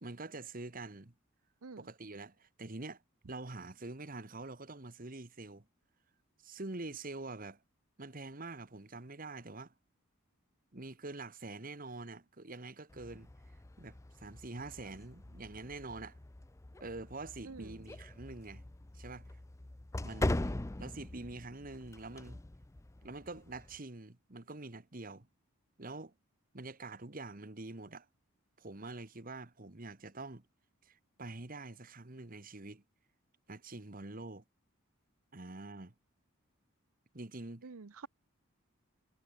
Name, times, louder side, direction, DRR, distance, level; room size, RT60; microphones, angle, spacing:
voice 1, 0.0-1.1 1.8-3.0 3.3-5.7 6.4-7.6 8.0-9.7 10.7-13.3 13.8-16.2 16.8-18.6 18.9-19.3 20.0-22.4 23.0-25.3 25.8-26.1 26.5-28.1 28.6-30.4 30.8-32.8 33.5-34.4 35.3-35.9 37.1-37.6, right 2 dB, 40° right, 1.5 m, -45 dB
sound 1, 12.9-23.8, left 1 dB, 15° left, 0.4 m, -42 dB
voice 2, 17.4-17.8 37.6-38.1, right 4 dB, 85° right, 0.8 m, -48 dB
head